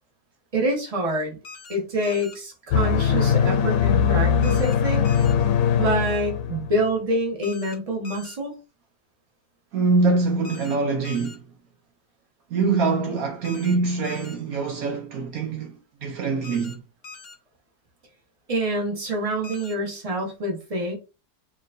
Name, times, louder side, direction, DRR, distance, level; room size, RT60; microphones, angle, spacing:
voice 1, 0.5-1.4 1.7-5.1 5.8-8.5 18.5-21.0, right 1 dB, 25° right, 1.3 m, -26 dB
sound 1, 1.4-1.8 2.0-2.4 4.4-4.8 5.0-5.3 7.4-7.8 8.0-8.4 10.4-10.8 11.0-11.4 13.4-13.7 14.0-14.4 16.4-16.7 17.0-17.3 19.4-19.7, left 4 dB, 45° left, 0.9 m, -42 dB
sound 2, 2.7-6.8, left 7 dB, 75° left, 1.1 m, -21 dB
voice 2, 9.7-11.4 12.5-16.8, right 4 dB, 65° right, 1.1 m, -24 dB
4.6 x 3.0 x 2.6 m
omnidirectional pair, 1.7 m